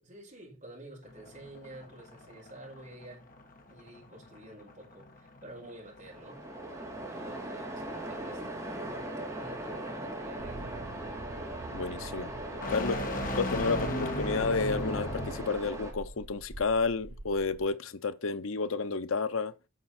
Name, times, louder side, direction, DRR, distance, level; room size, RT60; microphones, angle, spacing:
voice 1, 0.0-3.2 3.7-10.8, right 1 dB, 35° right, 5.7 m, -50 dB
sound 1, 1.0-15.6, left 1 dB, 40° left, 1.7 m, -40 dB
Waves surf, 6.1-15.9, right 1 dB, 15° right, 3.5 m, -40 dB
sound 2, 10.4-17.7, right 2 dB, 70° right, 0.8 m, -44 dB
voice 2, 11.7-12.3 12.7-13.0 13.3-19.5, left 4 dB, 85° left, 0.8 m, -31 dB
9.1 x 6.3 x 4.3 m
head